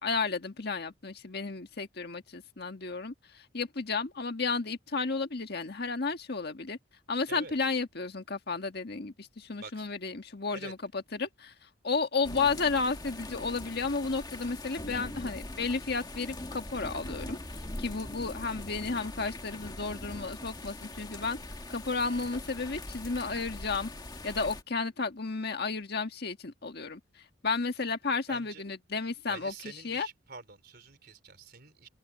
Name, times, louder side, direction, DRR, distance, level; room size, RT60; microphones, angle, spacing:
voice 1, 0.0-6.8 7.1-21.4 21.7-23.9 24.2-30.1, left 4 dB, 55° left, 1.6 m, -33 dB
voice 2, 9.6-9.9 10.5-10.7 28.3-28.6 29.3-31.9, right 4 dB, 55° right, 3.9 m, -47 dB
sound 1, 12.2-24.6, left 1 dB, 20° left, 1.7 m, -42 dB
head